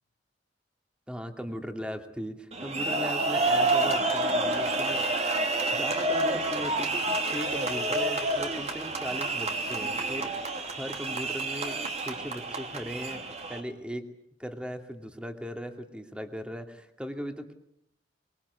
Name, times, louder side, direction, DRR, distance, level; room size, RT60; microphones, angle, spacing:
voice 1, 1.1-10.3 10.7-14.1 14.4-17.5, equal, 5° right, 5 dB, 2.5 m, -38 dB
sound 1, 2.5-13.6, right 2 dB, 40° right, 2.9 m, -29 dB
24.0 x 23.0 x 8.3 m, 0.73 s
head